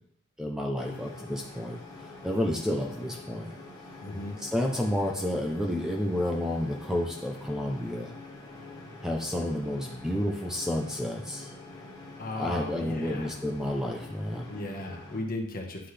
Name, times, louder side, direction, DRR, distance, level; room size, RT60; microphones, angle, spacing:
voice 1, 0.4-1.8 2.2-3.5 4.4-8.1 9.0-11.5 12.4-14.5, left 1 dB, ahead, 1 dB, 0.6 m, -30 dB
sound 1, 0.7-15.2, left 2 dB, 15° left, 1.7 m, -46 dB
voice 2, 4.0-4.4 12.2-13.3 14.5-15.9, left 1 dB, 40° left, 2 dB, 1.2 m, -36 dB
10.0 x 5.8 x 3.3 m, 0.68 s
head